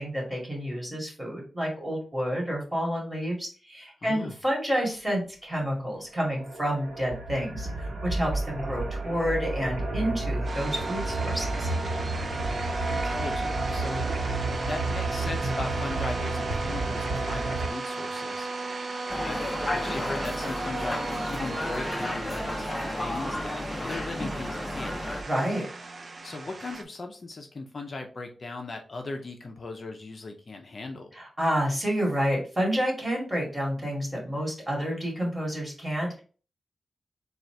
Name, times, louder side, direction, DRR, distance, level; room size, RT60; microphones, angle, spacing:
voice 1, 0.0-11.7 25.2-25.6 31.1-36.2, equal, 15° right, -1 dB, 2.3 m, -29 dB
voice 2, 4.0-4.3 12.6-14.0 14.7-18.5 19.2-19.4 19.7-25.0 26.2-31.1, left 3 dB, 50° left, 4 dB, 0.6 m, -38 dB
sound 1, 6.1-17.7, right 2 dB, 90° right, 0.9 m, -31 dB
sound 2, 10.4-26.8, right 3 dB, 60° right, 0.5 m, -36 dB
sound 3, 19.1-25.2, left 1 dB, 10° left, 0.8 m, -32 dB
3.9 x 2.4 x 4.5 m, 0.39 s
wide cardioid pair, 85°, 0 cm